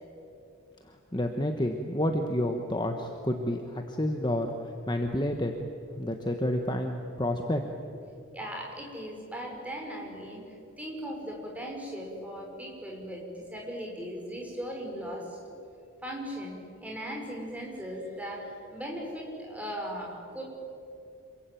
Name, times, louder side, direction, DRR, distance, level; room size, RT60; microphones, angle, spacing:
voice 1, 0.8-5.5 5.9-7.6, left 1 dB, 20° left, 4 dB, 1.3 m, -30 dB
voice 2, 8.3-10.4 10.8-15.4 16.0-16.5 16.8-20.4, equal, 5° right, -1 dB, 5.4 m, -38 dB
27.0 x 22.5 x 9.3 m, 2.7 s
head